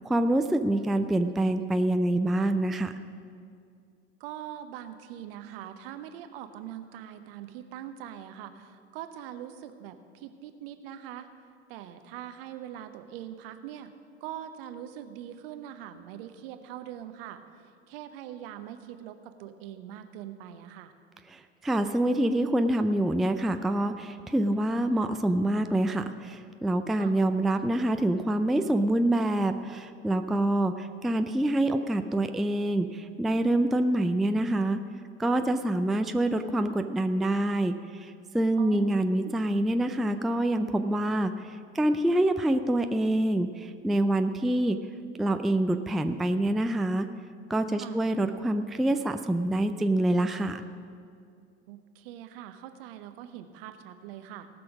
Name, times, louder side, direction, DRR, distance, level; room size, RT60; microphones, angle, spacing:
voice 1, 0.0-2.9 21.3-34.8 35.2-44.8 45.2-47.1 47.5-50.6, right 1 dB, ahead, 8 dB, 0.4 m, -26 dB
voice 2, 4.2-11.3 11.7-13.9 14.2-17.4 17.9-20.9 27.0-27.1 38.6-39.0 47.7-48.0 51.7-54.5, right 11 dB, 60° right, 9 dB, 0.9 m, -42 dB
18.0 x 6.2 x 6.1 m, 2.3 s
figure-of-eight pair, 65°, 33 cm